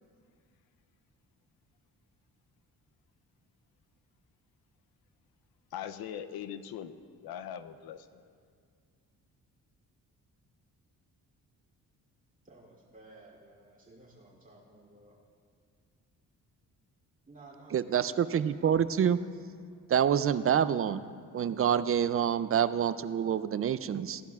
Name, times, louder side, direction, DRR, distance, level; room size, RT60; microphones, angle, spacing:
voice 1, 5.7-7.0 7.2-8.2, left 9 dB, 85° left, 11 dB, 0.6 m, -41 dB
voice 2, 12.4-15.2 17.3-18.3, right 2 dB, 20° right, -5 dB, 3.0 m, -55 dB
voice 3, 17.7-19.2 19.9-21.0 21.3-24.2, right 8 dB, 40° right, 14 dB, 0.4 m, -27 dB
17.0 x 11.5 x 2.4 m, 2.1 s
cardioid pair, 85°, 36 cm